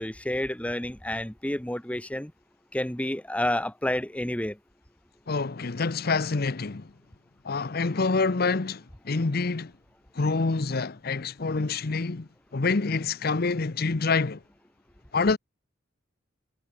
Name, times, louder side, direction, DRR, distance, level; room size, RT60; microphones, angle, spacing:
voice 1, 0.0-2.3 2.7-4.6, left 1 dB, 5° left, 1.1 m, -29 dB
voice 2, 5.3-6.9 7.4-9.7 10.1-14.4 15.1-15.4, left 4 dB, 50° left, 0.8 m, -27 dB
head